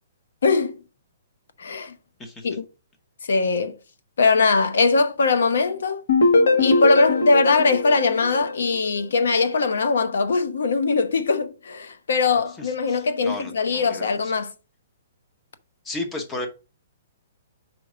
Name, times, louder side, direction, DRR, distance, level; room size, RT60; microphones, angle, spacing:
voice 1, 0.4-0.8 1.6-1.9 2.4-2.6 3.3-3.8 4.2-6.0 6.6-14.5, left 4 dB, 80° left, 0.9 m, -21 dB
sound 1, 6.1-9.0, left 2 dB, 65° left, 1.7 m, -21 dB
voice 2, 12.6-14.3 15.8-16.5, left 2 dB, 10° left, 0.9 m, -34 dB
5.3 x 4.5 x 4.9 m
hypercardioid pair, 175°, 0 cm